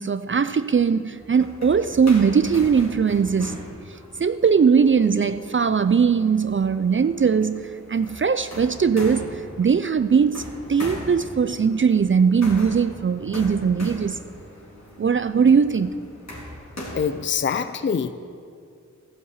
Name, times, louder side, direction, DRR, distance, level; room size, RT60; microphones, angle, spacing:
voice 1, 0.0-3.7 4.2-10.4 10.7-14.2 15.0-15.9, right 6 dB, 40° right, 0.4 m, -20 dB
sound 1, 1.1-17.3, left 1 dB, 60° left, 3.4 m, -40 dB
voice 2, 16.9-18.1, left 7 dB, 40° left, 0.5 m, -24 dB
13.5 x 7.4 x 8.1 m
cardioid pair, 40°, 30 cm